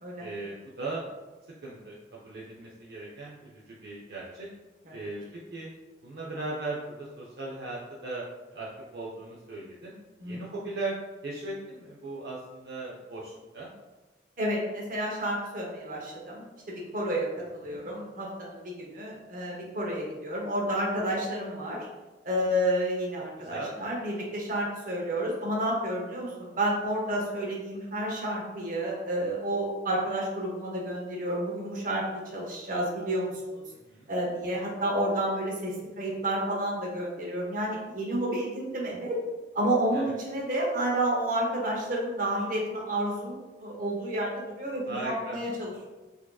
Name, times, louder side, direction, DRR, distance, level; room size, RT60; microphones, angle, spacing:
voice 1, 0.2-1.0 1.6-4.5 4.9-5.2 5.5-5.7 6.0-8.2 8.5-8.7 8.9-9.9 10.2-13.7 17.6-17.8 23.4-23.7 33.7-34.1 39.9-40.2 44.9-45.4, right 2 dB, 65° right, -5 dB, 0.5 m, -38 dB
voice 2, 10.2-10.6 14.4-21.9 22.2-33.6 34.1-39.2 39.5-45.9, right 1 dB, 50° right, -2 dB, 0.8 m, -30 dB
4.5 x 2.8 x 2.3 m, 1.2 s
head